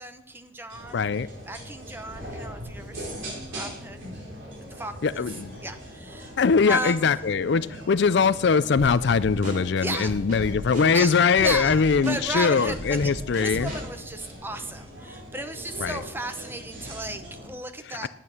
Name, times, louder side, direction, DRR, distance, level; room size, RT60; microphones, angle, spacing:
voice 1, 0.0-1.1 1.5-4.0 4.7-5.2 5.6-6.3 6.6-7.1 9.8-10.1 10.9-13.1 13.4-18.1, right 2 dB, 10° right, 8 dB, 0.8 m, -34 dB
sound 1, 0.7-17.5, equal, 65° right, 4.4 m, -41 dB
voice 2, 0.9-1.3 5.0-5.6 6.4-13.7 15.8-16.0 18.0-18.1, left 5 dB, 60° left, 16 dB, 0.4 m, -22 dB
Drum kit / Snare drum, 8.8-14.0, right 1 dB, 40° right, 3.3 m, -37 dB
11.0 x 9.1 x 6.4 m, 0.77 s
head